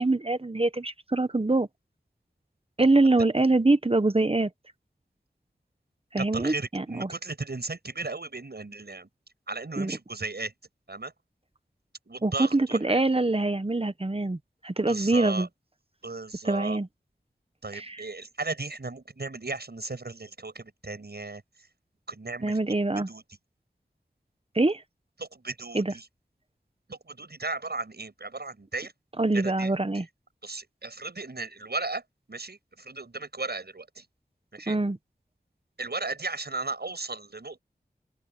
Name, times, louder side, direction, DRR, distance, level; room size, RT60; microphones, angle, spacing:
voice 1, 0.0-1.7 2.8-4.5 6.1-7.1 9.8-9.9 12.2-14.4 14.6-15.5 16.4-16.9 17.7-18.0 22.4-23.1 24.5-24.8 25.7-25.9 29.2-30.0 34.7-35.0, right 2 dB, 35° right, 1.2 m, -24 dB
voice 2, 6.2-9.1 9.5-10.5 10.9-11.1 12.1-13.0 14.9-15.5 16.0-16.8 17.6-21.4 22.1-22.6 23.1-23.2 25.2-26.1 26.9-28.9 29.3-29.7 30.4-32.0 32.3-34.1 34.5-34.8 35.8-37.6, right 3 dB, 70° right, 7.6 m, -35 dB
open air
wide cardioid pair, 50°, 17 cm